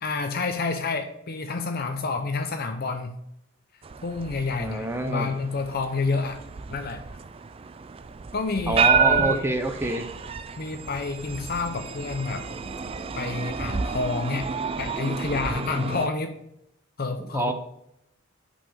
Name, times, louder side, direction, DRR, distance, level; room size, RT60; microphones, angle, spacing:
voice 1, 0.0-3.1 4.0-6.4 6.7-7.0 8.3-9.5 10.6-12.5 13.2-14.5 14.8-16.4 17.0-17.5, left 3 dB, 50° left, 6 dB, 0.6 m, -29 dB
sound 1, 3.8-16.1, right 6 dB, 30° right, 0.3 m, -30 dB
voice 2, 4.6-5.3 8.7-10.1 17.3-17.5, right 1 dB, 10° right, 6 dB, 0.7 m, -26 dB
5.8 x 5.6 x 6.7 m, 0.79 s
head